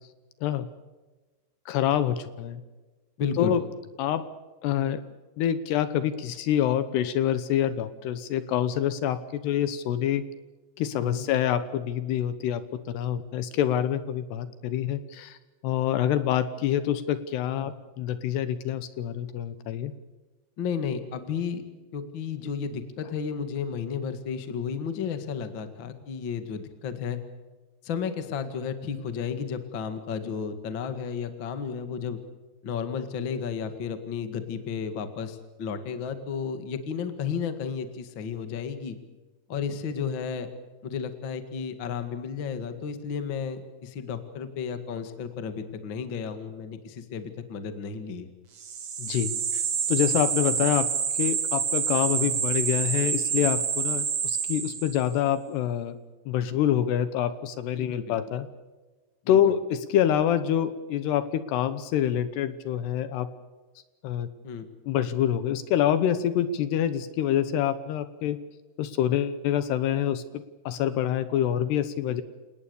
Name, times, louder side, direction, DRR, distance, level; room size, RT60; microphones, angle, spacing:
voice 1, 1.7-2.6 3.4-3.6 4.0-4.3 4.6-5.0 5.4-10.2 10.8-12.6 12.9-15.4 15.6-19.9 49.0-49.6 49.9-50.9 51.1-56.0 56.3-58.5 59.3-63.3 64.0-64.3 64.9-68.4 68.8-72.2, left 10 dB, 70° left, 13 dB, 2.8 m, -26 dB
voice 2, 3.2-3.5 11.0-11.3 17.5-17.7 20.6-21.6 21.9-27.2 27.8-32.2 32.6-38.9 39.5-40.5 40.8-48.3 57.8-58.2 59.2-59.4 64.4-64.7, left 6 dB, 55° left, 9 dB, 1.3 m, -33 dB
sound 1, 48.6-55.1, right 7 dB, 55° right, 1.5 m, -27 dB
29.0 x 19.0 x 6.9 m, 1.2 s
omnidirectional pair, 5.4 m